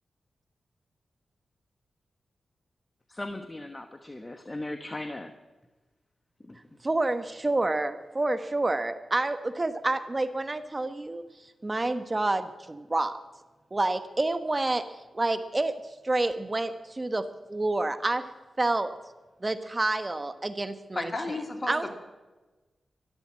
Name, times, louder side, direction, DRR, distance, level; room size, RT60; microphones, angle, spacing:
voice 1, 3.1-5.3 6.4-6.6, left 1 dB, 25° left, 8 dB, 1.2 m, -38 dB
voice 2, 6.8-11.2 11.6-13.2 13.7-14.8 15.1-15.7 16.0-18.2 18.6-18.9 19.4-21.1 21.7-21.9, right 2 dB, 30° right, 11 dB, 1.1 m, -28 dB
voice 3, 20.9-21.9, left 2 dB, 40° left, 4 dB, 2.6 m, -33 dB
13.0 x 12.5 x 7.5 m, 1.2 s
cardioid pair, 45°, 0 cm